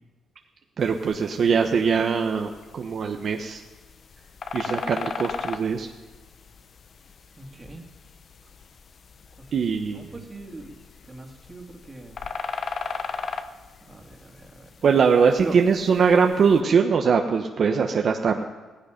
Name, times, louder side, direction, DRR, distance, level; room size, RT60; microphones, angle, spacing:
sound 1, 0.8-16.6, left 5 dB, 50° left, 0.9 m, -38 dB
voice 1, 0.8-3.6 4.5-5.9 9.5-10.1 14.8-18.4, right 6 dB, 55° right, 3 dB, 1.0 m, -21 dB
voice 2, 7.4-7.8 9.5-10.7 11.0-12.2 13.9-14.7 15.4-15.6, right 2 dB, 20° right, 1 dB, 2.5 m, -40 dB
16.5 x 15.0 x 5.2 m, 1.3 s
cardioid pair, 100°, 0 cm